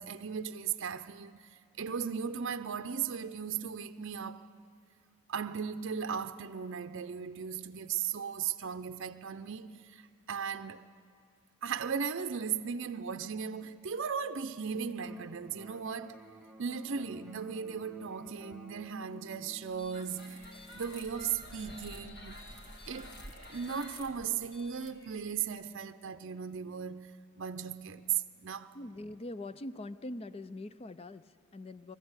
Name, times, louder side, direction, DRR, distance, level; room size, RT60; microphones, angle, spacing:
voice 1, 0.0-4.5 5.3-10.9 11.6-16.2 16.6-22.4 22.9-28.8, right 7 dB, 60° right, 0.6 m, -37 dB
Electric guitar, 15.0-22.9, right 1 dB, ahead, 0.7 m, -53 dB
sound 1, 19.8-25.6, left 1 dB, 50° left, 2.0 m, -49 dB
voice 2, 28.7-32.0, left 2 dB, 25° left, 0.5 m, -43 dB
22.0 x 14.5 x 8.0 m
head